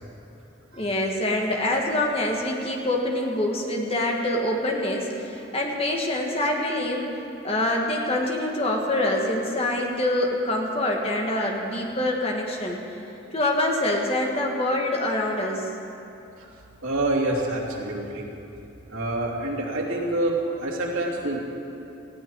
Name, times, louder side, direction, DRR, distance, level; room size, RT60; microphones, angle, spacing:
voice 1, 0.8-7.2 7.4-12.8 13.3-15.7, left 1 dB, 30° left, 0 dB, 1.7 m, -25 dB
voice 2, 16.8-18.2 18.9-21.4, right 2 dB, 90° right, -2 dB, 2.8 m, -27 dB
19.5 x 15.5 x 4.7 m, 2.8 s
head